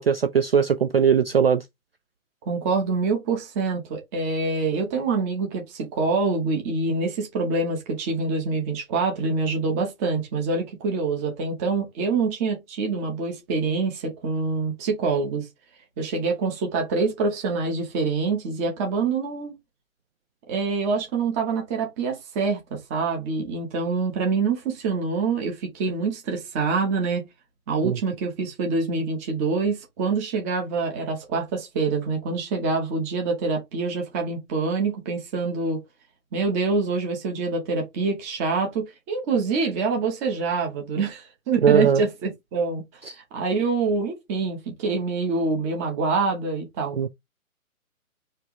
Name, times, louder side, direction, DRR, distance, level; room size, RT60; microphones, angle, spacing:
voice 1, 0.0-1.6 27.8-28.0 41.6-42.0 43.0-43.1 47.0-47.1, right 7 dB, 45° right, 0.4 m, -19 dB
voice 2, 2.5-15.5 16.0-19.5 20.5-27.3 27.7-35.8 36.3-42.8 43.3-47.0, right 4 dB, 10° right, 0.9 m, -25 dB
4.5 x 3.0 x 3.5 m
figure-of-eight pair, 150°, 43 cm